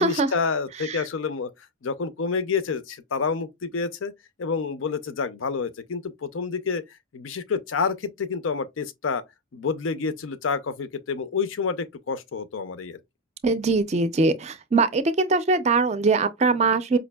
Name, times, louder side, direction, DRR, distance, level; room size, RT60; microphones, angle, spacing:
voice 1, 0.0-1.5 1.8-4.1 4.4-6.8 7.1-9.2 9.5-13.0, left 5 dB, 80° left, 0.5 m, -28 dB
voice 2, 13.4-17.0, right 3 dB, 35° right, 0.4 m, -22 dB
5.0 x 2.5 x 2.2 m
head